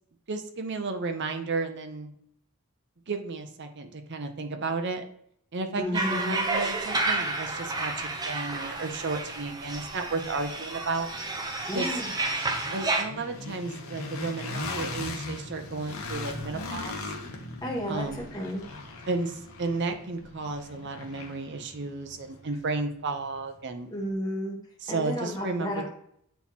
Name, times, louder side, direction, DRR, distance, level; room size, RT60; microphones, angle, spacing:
voice 1, 0.3-2.1 3.1-5.0 5.5-11.1 11.7-11.9 12.7-17.0 17.9-18.3 19.1-23.9 24.8-25.9, right 3 dB, 55° right, 6 dB, 0.7 m, -33 dB
voice 2, 5.8-6.4 11.7-12.1 17.6-18.6 23.9-24.6 24.9-25.9, equal, 20° left, -1 dB, 1.4 m, -32 dB
sound 1, 5.9-13.0, right 2 dB, 20° right, 0.7 m, -31 dB
sound 2, 7.0-7.1 7.6-23.5, left 2 dB, 75° left, 1.0 m, -40 dB
7.9 x 4.2 x 2.9 m, 0.69 s
head